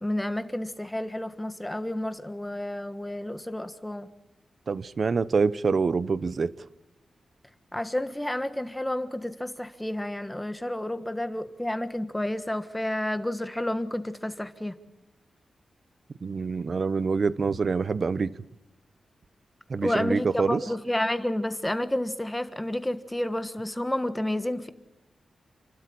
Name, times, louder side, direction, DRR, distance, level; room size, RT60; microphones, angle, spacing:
voice 1, 0.0-4.1 7.7-14.8 19.8-24.7, left 1 dB, 10° left, 1.4 m, -30 dB
voice 2, 4.7-6.5 16.2-18.3 19.7-20.6, right 4 dB, 50° right, 0.8 m, -26 dB
29.0 x 12.5 x 8.7 m
wide cardioid pair, 100°, 0 cm